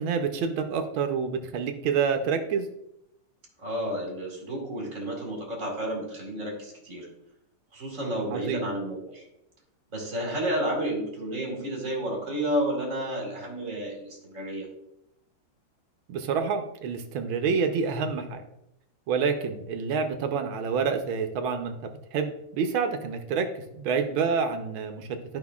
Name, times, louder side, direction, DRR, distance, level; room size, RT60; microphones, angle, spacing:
voice 1, 0.0-2.7 8.3-8.6 16.1-18.4 19.1-21.7 22.1-25.1, right 6 dB, 75° right, 6 dB, 1.5 m, -28 dB
voice 2, 3.6-7.1 7.7-9.3 9.9-14.7, right 1 dB, 40° right, -1 dB, 2.1 m, -31 dB
11.5 x 5.6 x 2.3 m, 0.80 s
omnidirectional pair, 2.3 m